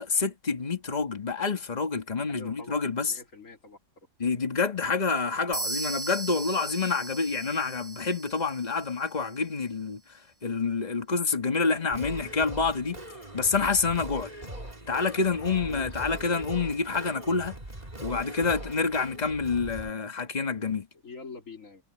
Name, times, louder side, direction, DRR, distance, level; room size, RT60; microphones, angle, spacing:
voice 1, 0.0-3.1 4.2-10.0 10.4-13.0 13.3-14.3 14.9-17.6 18.0-20.9, left 4 dB, 25° left, 1.9 m, -28 dB
voice 2, 2.4-3.8 15.4-16.4 21.0-21.8, left 4 dB, 50° left, 3.5 m, -45 dB
sound 1, 5.5-9.3, right 2 dB, 40° right, 1.5 m, -37 dB
Singing, 11.9-19.9, right 1 dB, 25° right, 3.1 m, -41 dB
omnidirectional pair, 1.8 m